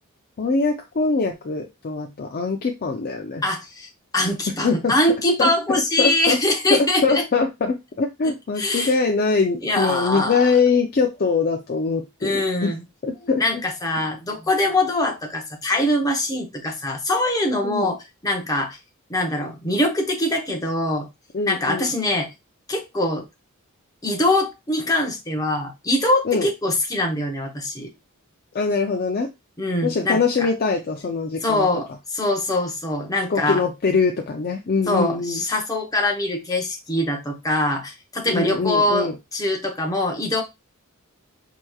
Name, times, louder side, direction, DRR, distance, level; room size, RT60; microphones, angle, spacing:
voice 1, 0.4-3.4 4.6-5.0 5.4-5.5 6.0-6.4 6.7-12.7 13.0-13.6 17.6-17.9 21.3-21.9 26.2-26.5 28.5-29.3 29.8-31.7 33.3-35.4 38.2-39.2, left 4 dB, 45° left, 3 dB, 0.4 m, -23 dB
voice 2, 3.4-3.9 4.1-7.2 8.6-8.9 9.6-10.5 12.2-12.8 13.4-18.8 19.1-21.1 21.5-22.3 22.7-23.2 24.0-27.9 29.6-30.5 31.4-33.6 34.9-40.4, left 1 dB, 15° left, 1 dB, 0.8 m, -23 dB
4.5 x 2.9 x 2.3 m, 0.22 s
head